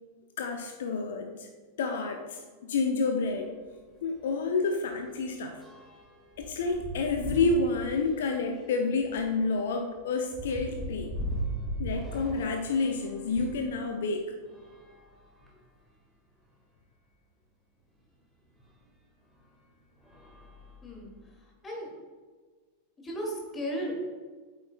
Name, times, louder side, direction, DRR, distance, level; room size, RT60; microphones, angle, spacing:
voice 1, 0.4-1.5 1.8-3.5 4.0-5.6 6.4-11.2 11.8-14.3, left 4 dB, 60° left, 5 dB, 0.6 m, -29 dB
sound 1, 3.2-3.4 3.8-4.0 4.2-13.7 14.4-15.8 16.5-16.6 16.8-16.9 18.6-18.7 19.3-19.6 20.0-21.3, right 1 dB, 5° right, 1.7 m, -40 dB
voice 2, 20.8-21.1 21.6-21.9 23.0-24.0, right 1 dB, 20° left, -1 dB, 2.2 m, -34 dB
8.5 x 7.7 x 2.2 m, 1.5 s
figure-of-eight pair, 90°, 0 cm